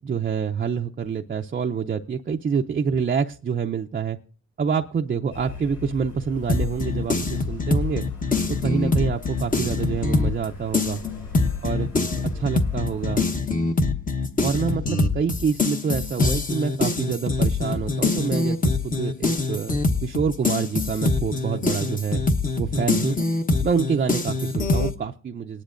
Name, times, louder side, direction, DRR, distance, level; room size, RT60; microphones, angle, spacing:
voice 1, 0.0-4.2 4.6-8.0 8.5-11.0 11.6-11.9 12.3-13.2 14.4-18.6 18.8-22.2 22.6-23.2 23.6-25.6, right 6 dB, 30° right, 3 dB, 0.5 m, -26 dB
sound 1, 5.3-13.2, left 5 dB, 85° left, 7.2 m, -39 dB
sound 2, 6.5-10.4 10.7-24.9, left 3 dB, 25° left, 1.0 m, -24 dB
19.5 x 10.0 x 2.5 m, 0.40 s
cardioid pair, 90°, 30 cm